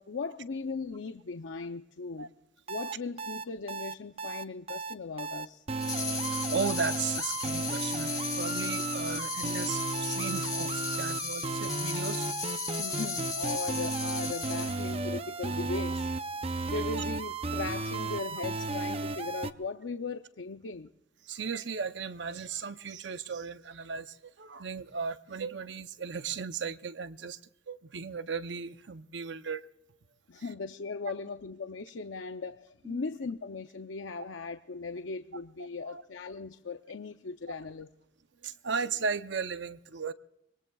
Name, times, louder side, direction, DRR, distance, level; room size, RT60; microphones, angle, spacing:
voice 1, 0.0-2.3 2.7-5.6 12.8-16.1 16.7-20.9 30.3-37.9, left 4 dB, 75° left, 0.6 m, -38 dB
sound 1, 2.7-19.5, right 3 dB, 30° right, 0.5 m, -34 dB
sound 2, 5.8-15.0, left 6 dB, 20° left, 1.6 m, -36 dB
voice 2, 5.9-12.3 16.7-16.8 21.2-27.4 27.7-29.7 30.4-30.5 32.8-33.0 35.8-36.0 37.5-37.6 38.4-40.1, right 5 dB, 65° right, 0.7 m, -36 dB
25.0 x 21.5 x 2.3 m
head